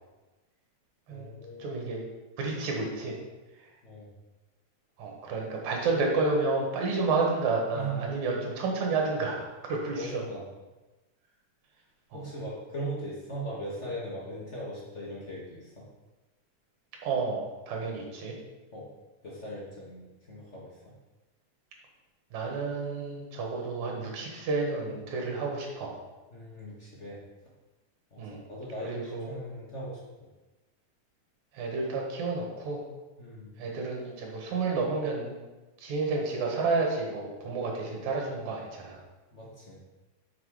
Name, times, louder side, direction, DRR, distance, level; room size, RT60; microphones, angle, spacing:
voice 1, 1.1-1.8 3.8-4.1 7.7-8.1 9.9-10.5 12.1-15.9 18.7-18.9 19.2-20.9 26.3-27.2 28.1-30.0 33.2-33.5 39.3-39.8, right 1 dB, 45° left, -5 dB, 0.9 m, -39 dB
voice 2, 1.6-2.0 2.4-3.2 5.0-10.2 12.1-12.2 17.0-18.4 22.3-25.9 28.2-28.4 28.8-29.3 31.5-32.8 33.6-35.3 35.8-39.0, right 3 dB, 75° right, 0 dB, 2.7 m, -30 dB
6.1 x 5.9 x 4.8 m, 1.1 s
omnidirectional pair, 3.4 m